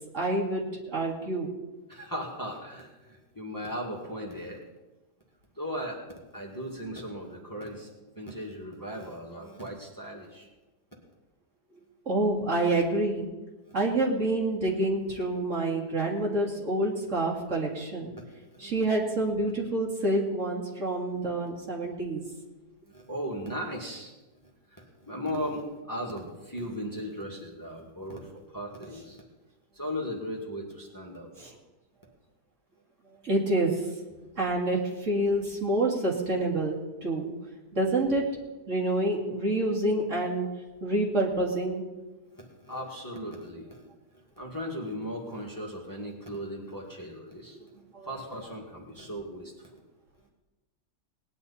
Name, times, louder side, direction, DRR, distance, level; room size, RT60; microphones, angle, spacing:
voice 1, 0.1-1.5 12.1-13.3 13.7-18.1 18.6-22.2 31.4-31.5 33.2-33.7 34.4-37.3 37.8-38.2 38.7-40.5 40.8-41.8 47.9-48.1, right 2 dB, 45° right, -2 dB, 2.5 m, -27 dB
voice 2, 1.9-4.6 5.5-10.5 13.7-13.8 18.1-18.8 22.9-24.1 24.7-29.2 29.7-31.5 34.2-34.3 42.3-43.9 44.4-47.6 48.0-49.8, equal, 10° left, -1 dB, 1.9 m, -37 dB
19.0 x 10.5 x 4.2 m, 1.1 s
omnidirectional pair, 1.8 m